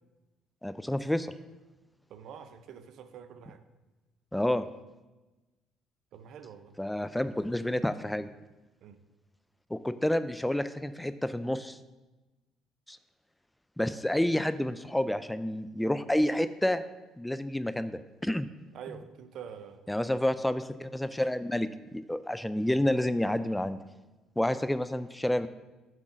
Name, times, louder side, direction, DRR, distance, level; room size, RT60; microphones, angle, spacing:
voice 1, 0.6-1.3 4.3-4.7 6.8-8.3 9.7-11.8 12.9-13.0 13.8-16.8 17.2-18.5 19.9-23.8 24.4-25.5, left 1 dB, 5° left, 12 dB, 0.4 m, -29 dB
voice 2, 2.1-3.6 6.1-6.7 8.8-9.0 18.7-19.8, right 8 dB, 65° right, 9 dB, 0.6 m, -46 dB
7.6 x 3.8 x 6.2 m, 1.1 s
supercardioid pair, 65°, 0 cm